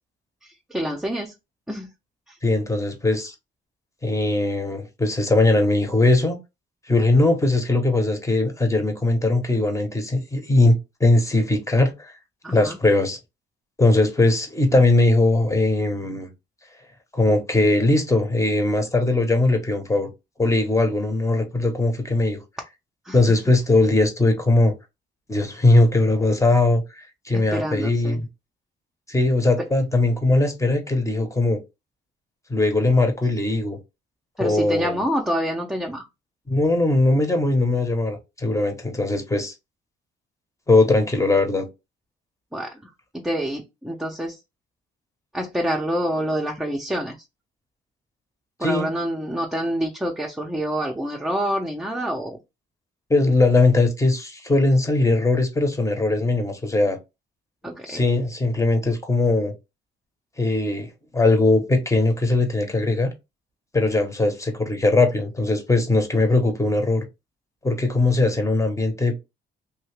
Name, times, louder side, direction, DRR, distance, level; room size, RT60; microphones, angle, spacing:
voice 1, 0.4-1.3 1.7-1.9 2.3-2.4 12.4-12.8 23.0-23.2 27.3-28.2 29.6-29.7 34.4-36.1 42.5-42.8 43.1-44.4 45.3-47.2 48.6-52.4 57.6-58.0, equal, 5° right, 0.6 m, -27 dB
voice 2, 2.4-3.3 4.0-6.4 6.9-12.1 12.5-13.2 13.8-16.3 17.1-20.1 20.4-22.4 23.1-24.7 25.3-28.3 29.1-31.6 32.5-33.8 34.4-35.0 36.5-39.5 40.7-41.7 48.6-48.9 53.1-57.0 57.9-59.5 60.4-63.1 63.7-67.1 67.6-69.2, left 2 dB, 15° left, 0.9 m, -20 dB
2.8 x 2.7 x 3.3 m
cardioid pair, 90°, 20 cm